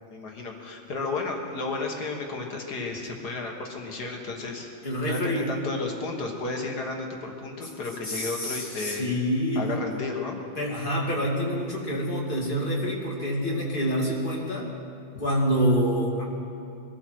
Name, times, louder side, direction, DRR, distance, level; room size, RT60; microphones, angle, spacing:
voice 1, 0.1-4.7 5.1-9.1 9.6-10.4, left 3 dB, 55° left, 1 dB, 2.0 m, -33 dB
voice 2, 4.8-5.5 8.0-9.8 10.6-14.7 15.2-16.2, equal, 25° left, -3 dB, 2.7 m, -27 dB
23.0 x 13.5 x 4.5 m, 2.6 s
omnidirectional pair, 2.1 m